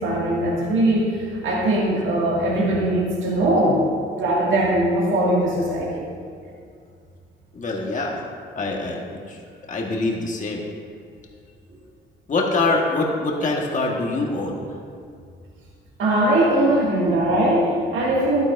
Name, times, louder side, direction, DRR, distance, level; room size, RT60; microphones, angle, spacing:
voice 1, 0.0-3.8 4.1-6.0 16.0-18.5, right 1 dB, 75° right, -5 dB, 2.0 m, -20 dB
voice 2, 7.5-8.2 8.5-9.4 9.7-10.6 12.3-14.6, left 2 dB, 40° left, 0 dB, 1.4 m, -24 dB
12.0 x 9.7 x 2.6 m, 2.2 s
cardioid pair, 90°, 20 cm